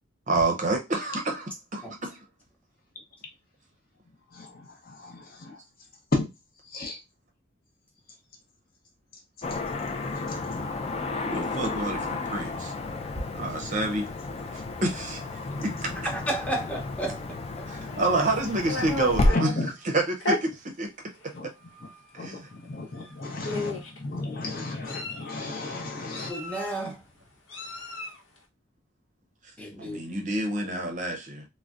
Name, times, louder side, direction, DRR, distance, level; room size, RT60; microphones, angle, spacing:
voice 1, 0.3-2.2 11.2-12.7 13.3-14.1 14.5-15.2 15.6-15.9 17.7-20.9 21.4-21.5 22.1-22.5 29.8-31.5, right 2 dB, 40° right, 0.6 m, -28 dB
voice 2, 5.0-5.5 6.1-6.2 6.7-7.0 19.3-19.7 21.4-21.5 22.2-22.3 22.7-26.3, left 2 dB, 50° left, 0.7 m, -32 dB
Car passing by / Traffic noise roadway noise, 9.4-19.3, left 2 dB, 30° left, 0.4 m, -31 dB
voice 3, 16.1-17.2 17.6-17.7 26.3-27.0 29.6-30.0, right 1 dB, 5° left, 0.7 m, -32 dB
Meow, 17.9-19.5 20.2-20.4 21.2-21.4 21.7-21.9 23.0-23.1 23.4-24.0 24.6-25.3 26.1-26.9 27.5-28.2, left 2 dB, 80° left, 0.9 m, -33 dB
3.8 x 2.1 x 2.4 m
head